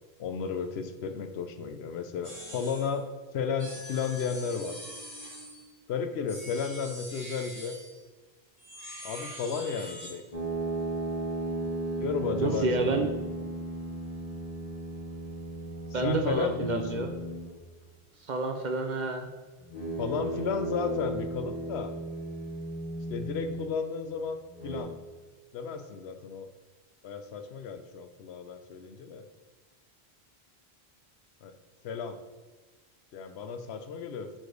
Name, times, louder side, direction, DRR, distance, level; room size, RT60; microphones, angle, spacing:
voice 1, 0.2-3.1 3.3-4.7 5.9-7.8 9.0-10.2 12.0-13.1 16.0-17.0 20.0-21.9 23.1-24.4 24.6-24.9 25.5-26.5 27.0-29.2 31.4-31.5 31.8-32.2 33.1-34.3, left 6 dB, 80° left, 8 dB, 0.8 m, -33 dB
sound 1, 2.2-3.0 3.6-5.7 6.3-8.0 8.6-10.2, equal, 15° right, 1.9 m, -43 dB
sound 2, 10.3-17.6 19.6-23.8 24.5-24.8, right 2 dB, 35° left, 1.3 m, -35 dB
voice 2, 12.4-13.1 15.9-17.1 18.3-19.3, right 3 dB, 55° right, 5 dB, 0.6 m, -29 dB
4.8 x 4.4 x 4.6 m, 1.3 s
omnidirectional pair, 1.1 m